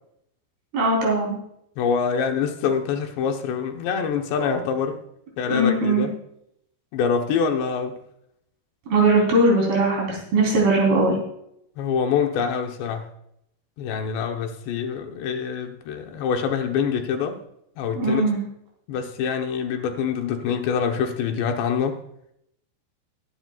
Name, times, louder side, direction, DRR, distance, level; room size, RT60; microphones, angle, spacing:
voice 1, 0.7-1.3 5.5-6.1 8.9-11.2 18.0-18.4, right 2 dB, 55° right, -1 dB, 5.5 m, -20 dB
voice 2, 1.8-5.0 5.4-6.1 6.9-8.0 11.8-13.1 13.8-17.4 17.8-18.3 18.9-22.0, left 6 dB, 75° left, 4 dB, 3.2 m, -25 dB
21.5 x 9.9 x 2.4 m, 0.75 s
omnidirectional pair, 5.1 m